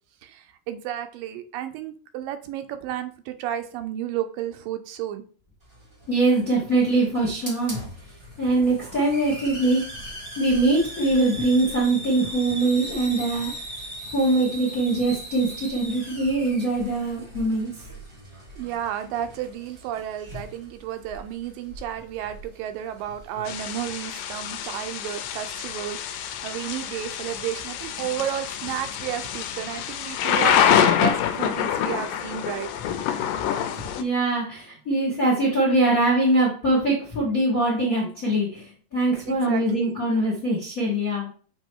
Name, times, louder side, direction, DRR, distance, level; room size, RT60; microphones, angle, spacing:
voice 1, 0.2-5.2 18.5-32.7 39.3-40.0, right 11 dB, 80° right, 8 dB, 2.2 m, -32 dB
Hiss, 5.6-23.5, equal, 50° right, 0.3 m, -40 dB
voice 2, 6.1-7.9 8.4-9.8 10.4-13.5 14.1-17.9 33.8-41.3, right 2 dB, 45° left, -4 dB, 1.1 m, -23 dB
Thunder / Rain, 23.5-34.0, left 9 dB, 80° left, 2.2 m, -26 dB
7.8 x 3.0 x 4.6 m, 0.40 s
omnidirectional pair, 4.1 m